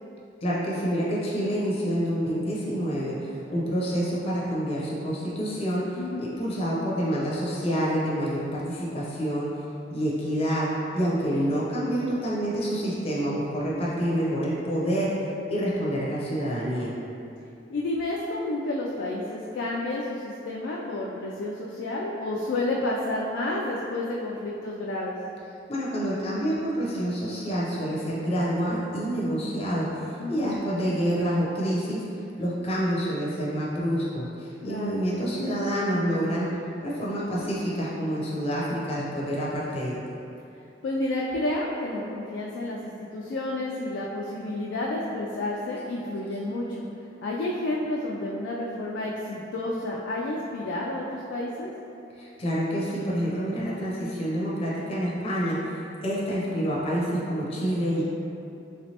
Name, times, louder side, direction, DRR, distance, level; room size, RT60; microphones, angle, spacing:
voice 1, 0.4-9.5 9.9-15.1 15.5-16.9 25.7-29.9 30.3-32.0 32.4-36.5 36.8-40.0 52.2-58.0, equal, 35° left, -7 dB, 0.6 m, -27 dB
voice 2, 5.9-6.4 11.3-11.5 17.7-25.2 30.2-30.5 34.6-35.0 40.8-46.8 47.2-51.7, left 2 dB, 80° left, -4 dB, 0.3 m, -30 dB
3.3 x 3.1 x 2.8 m, 2.7 s
head